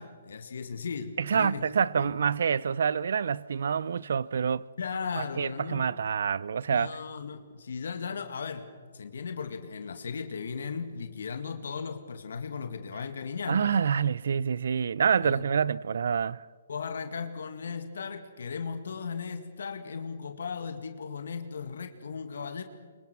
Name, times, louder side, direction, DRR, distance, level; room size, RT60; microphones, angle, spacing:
voice 1, 0.0-1.6 2.0-2.1 4.8-5.9 6.7-13.7 15.2-15.4 16.7-22.6, left 5 dB, 70° left, 1.9 m, -37 dB
voice 2, 1.2-4.7 5.2-7.0 13.5-16.4, right 7 dB, 65° right, 0.6 m, -27 dB
25.0 x 23.0 x 6.1 m
hypercardioid pair, 140°, 0 cm